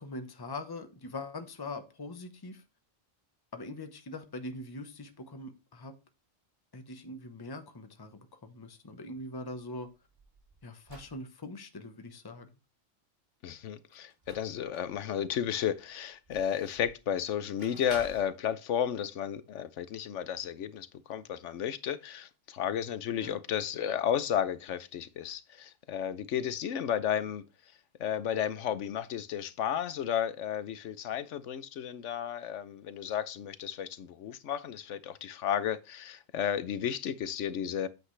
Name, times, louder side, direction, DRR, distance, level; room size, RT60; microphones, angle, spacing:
voice 1, 0.0-2.6 3.5-5.9 6.7-9.9 10.6-12.5 23.2-23.4, left 2 dB, 20° left, 0.9 m, -42 dB
sound 1, 9.7-11.2 13.9-15.0 15.5-17.0 17.6-18.2, right 1 dB, 50° right, 3.6 m, -50 dB
voice 2, 13.4-27.4 28.0-37.9, left 9 dB, 70° left, 1.0 m, -33 dB
9.1 x 7.7 x 3.2 m
omnidirectional pair, 1.3 m